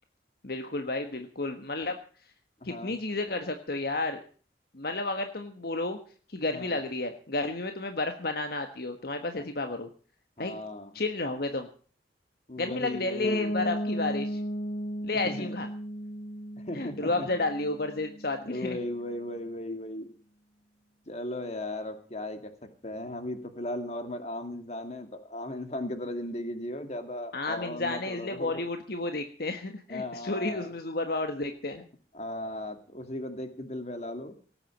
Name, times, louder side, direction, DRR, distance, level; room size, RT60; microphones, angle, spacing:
voice 1, 0.4-2.0 2.6-4.2 4.7-6.0 6.3-9.9 10.4-10.6 10.9-11.7 12.6-14.4 15.0-15.7 16.7-18.8 27.3-31.8, left 2 dB, 60° left, 6 dB, 1.5 m, -31 dB
voice 2, 2.6-3.0 6.5-6.8 9.4-9.5 10.4-11.0 12.5-13.6 15.2-15.5 16.6-17.3 18.4-20.1 21.1-22.5 22.8-28.6 29.9-30.7 32.1-34.3, left 1 dB, 40° left, 7 dB, 2.4 m, -36 dB
Piano, 13.2-18.9, equal, 75° left, 1.4 m, -35 dB
18.0 x 8.8 x 7.4 m, 0.42 s
head